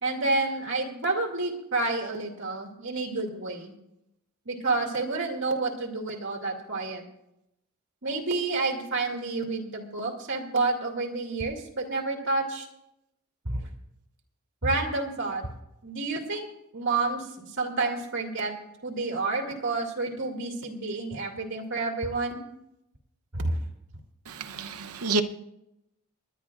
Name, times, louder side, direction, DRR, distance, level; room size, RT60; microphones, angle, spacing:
voice 1, 0.0-3.7 4.5-7.0 8.0-12.7 13.4-13.7 14.6-15.4 15.8-16.5 16.7-18.5 18.8-22.4 23.3-23.6, right 3 dB, 60° right, 2.3 m, -29 dB
voice 2, 24.3-25.2, right 3 dB, 90° right, 0.8 m, -29 dB
28.0 x 11.0 x 2.4 m
head